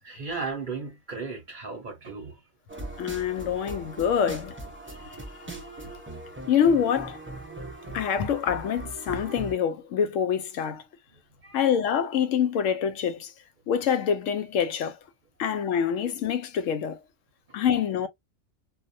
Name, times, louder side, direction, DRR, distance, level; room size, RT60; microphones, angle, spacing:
voice 1, 0.0-2.4 11.4-11.7 15.4-15.5, right 4 dB, 45° right, 0.7 m, -36 dB
sound 1, 2.7-9.5, right 2 dB, 20° right, 0.3 m, -40 dB
voice 2, 3.0-4.5 6.5-7.2 7.9-10.8 11.5-13.3 13.7-15.0 15.4-17.0 17.5-18.1, left 8 dB, 75° left, 0.9 m, -25 dB
2.3 x 2.1 x 2.5 m
omnidirectional pair, 1.4 m